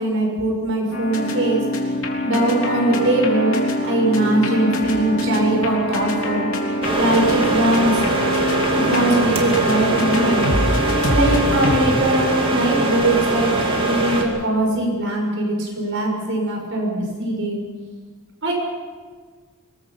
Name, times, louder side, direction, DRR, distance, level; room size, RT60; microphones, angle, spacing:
voice 1, 0.0-1.6 2.2-3.6 3.8-6.5 7.0-8.0 8.4-8.5 8.7-10.5 11.1-17.6 18.4-18.5, right 1 dB, 60° right, 1 dB, 6.3 m, -21 dB
sound 1, 0.9-11.8, left 1 dB, 65° left, 3.5 m, -24 dB
sound 2, 6.8-14.2, right 2 dB, 25° right, 2.6 m, -22 dB
24.5 x 21.0 x 5.8 m, 1.5 s
head